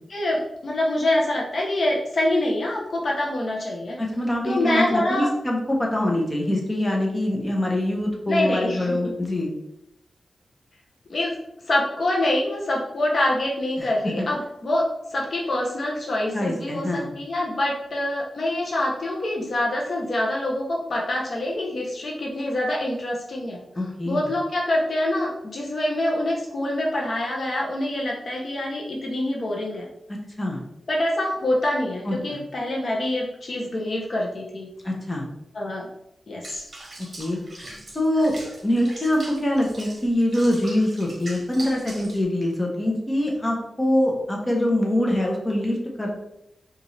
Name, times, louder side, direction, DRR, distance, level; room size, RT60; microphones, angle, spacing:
voice 1, 0.1-4.0 4.4-5.3 8.3-9.1 11.1-11.3 11.7-23.6 24.1-29.9 30.9-34.7 35.5-35.9 36.3-36.6, left 1 dB, 55° left, -2 dB, 0.9 m, -25 dB
voice 2, 4.0-9.5 13.8-14.3 16.3-17.1 23.7-24.3 30.4-30.6 32.0-32.4 34.8-35.2 37.2-38.3 38.6-46.3, left 1 dB, 20° left, -1 dB, 1.0 m, -24 dB
Water / Bathtub (filling or washing), 36.4-42.2, right 1 dB, 40° right, 1.5 m, -41 dB
5.1 x 2.7 x 3.2 m, 0.81 s
wide cardioid pair, 80°, 0 cm